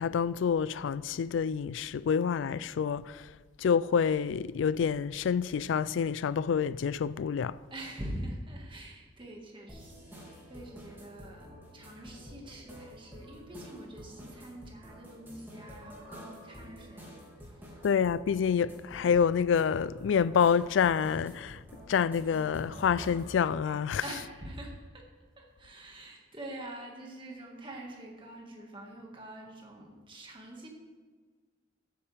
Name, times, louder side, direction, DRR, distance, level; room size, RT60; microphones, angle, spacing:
voice 1, 0.0-3.3 3.6-7.6 17.8-21.6 21.9-24.0, left 7 dB, 80° left, 0.3 m, -27 dB
voice 2, 7.7-11.5 11.7-17.9 24.0-25.0 25.4-30.7, right 1 dB, 25° right, 1.8 m, -45 dB
sound 1, 9.7-23.4, equal, 10° right, 2.5 m, -49 dB
14.0 x 8.7 x 3.5 m
head